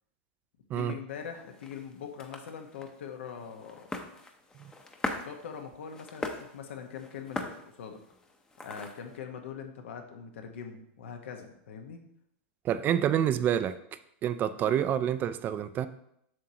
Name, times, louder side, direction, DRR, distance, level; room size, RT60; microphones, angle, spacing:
voice 1, 0.7-3.9 5.1-8.0 8.6-12.0, left 7 dB, 75° left, 5 dB, 1.2 m, -42 dB
sound 1, 1.1-9.2, left 3 dB, 10° left, 0.7 m, -41 dB
voice 2, 12.6-13.8 14.2-15.9, right 10 dB, 30° right, 12 dB, 0.4 m, -27 dB
7.5 x 6.2 x 2.9 m, 0.75 s
hypercardioid pair, 130°, 7 cm